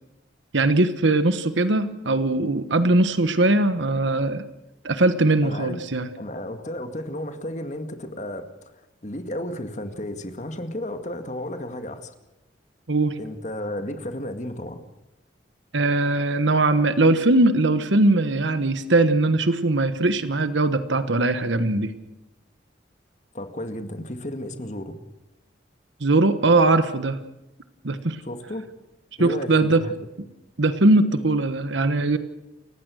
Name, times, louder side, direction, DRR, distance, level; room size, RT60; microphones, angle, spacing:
voice 1, 0.5-4.4 4.8-6.1 12.9-13.2 15.7-21.9 26.0-27.2 27.8-28.2 29.2-29.9 30.6-32.2, right 2 dB, 80° right, 11 dB, 1.2 m, -20 dB
voice 2, 5.4-5.8 6.2-12.1 13.2-14.8 23.3-25.0 28.2-28.7 29.2-30.0, left 1 dB, 40° left, 7 dB, 2.1 m, -33 dB
29.5 x 15.5 x 6.4 m, 0.96 s
head